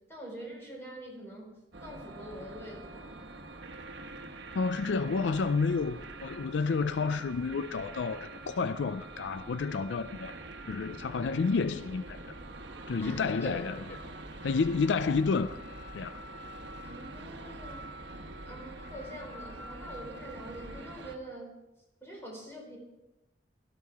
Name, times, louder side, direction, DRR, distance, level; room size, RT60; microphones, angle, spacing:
voice 1, 0.1-1.5 1.8-3.2 13.0-13.6 16.8-17.9 18.4-21.5 22.0-22.8, right 1 dB, 15° left, 4.6 m, -44 dB
sound 1, 1.7-21.2, right 2 dB, 80° right, 1.1 m, -45 dB
voice 2, 4.5-10.3 10.7-12.3 12.9-14.1 14.4-15.6 15.9-16.2, left 4 dB, 80° left, 0.4 m, -30 dB
17.0 x 13.0 x 3.6 m
head